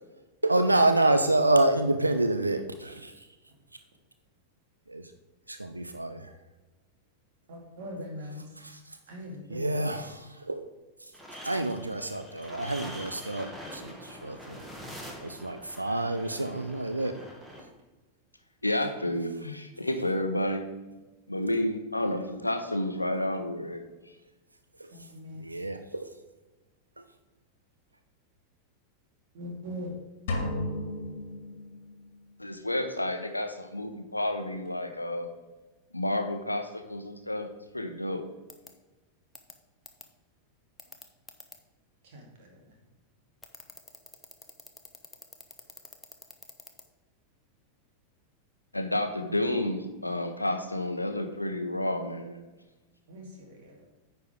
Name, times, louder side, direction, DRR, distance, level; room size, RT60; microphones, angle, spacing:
voice 1, 0.4-3.1 4.9-5.0 5.5-6.3 8.6-8.8 9.5-10.7 11.4-14.6 15.2-17.1 24.8-24.9 25.4-26.1, right 2 dB, 85° right, 8 dB, 0.5 m, -27 dB
voice 2, 7.5-8.4 9.1-9.9 24.9-25.4 29.3-29.9 42.0-42.6 53.1-53.8, equal, 55° right, 0 dB, 2.3 m, -41 dB
sound 1, 11.1-17.6, equal, 5° right, 1.6 m, -44 dB
voice 3, 18.6-20.7 21.3-23.8 32.4-35.3 35.9-37.5 37.7-38.3 48.7-52.4, left 1 dB, 85° left, 7 dB, 0.8 m, -30 dB
sound 2, 30.3-32.3, left 1 dB, 55° left, 1.6 m, -34 dB
sound 3, 38.5-38.7 39.3-39.5 39.8-40.0 40.8-41.5 43.4-46.8, left 3 dB, 10° left, 0.9 m, -46 dB
9.4 x 4.6 x 5.0 m, 1.2 s
figure-of-eight pair, 90°, 0 cm